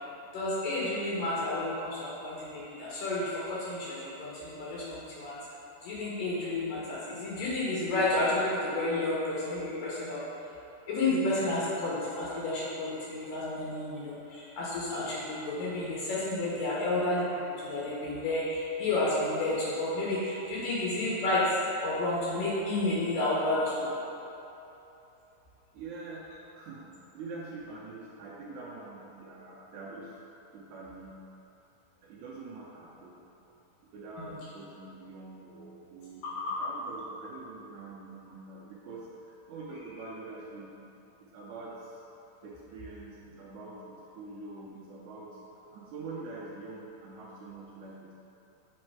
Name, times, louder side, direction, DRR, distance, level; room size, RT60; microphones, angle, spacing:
voice 1, 0.3-5.4 5.8-10.2 10.9-23.7 34.2-34.3 36.4-36.6, left 2 dB, 75° left, -7 dB, 2.6 m, -31 dB
voice 2, 25.7-26.3 26.5-26.8 27.1-30.2 30.5-31.2 32.0-33.2 33.9-36.2 36.6-40.7 41.2-42.0 42.4-45.4 45.7-48.1, right 3 dB, 80° right, -5 dB, 1.7 m, -44 dB
6.4 x 4.2 x 4.6 m, 3.0 s
omnidirectional pair, 4.0 m